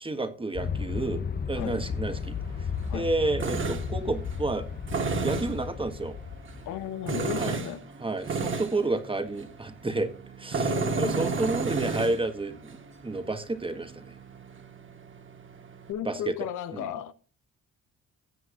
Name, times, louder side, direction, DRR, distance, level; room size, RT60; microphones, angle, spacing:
voice 1, 0.0-1.2 1.5-2.7 2.9-4.7 5.2-6.1 7.3-7.6 8.0-10.1 10.4-12.8 13.0-14.1 16.0-16.3 16.7-16.9, right 2 dB, 15° right, 1.5 m, -30 dB
Aircraft, 0.5-6.9, left 6 dB, 30° left, 0.8 m, -34 dB
Tools, 1.8-15.9, right 4 dB, 40° right, 1.6 m, -34 dB
voice 2, 6.7-7.8 10.6-11.3 15.9-17.1, left 10 dB, 80° left, 0.9 m, -35 dB
16.5 x 7.6 x 2.5 m
cardioid pair, 90°, 30 cm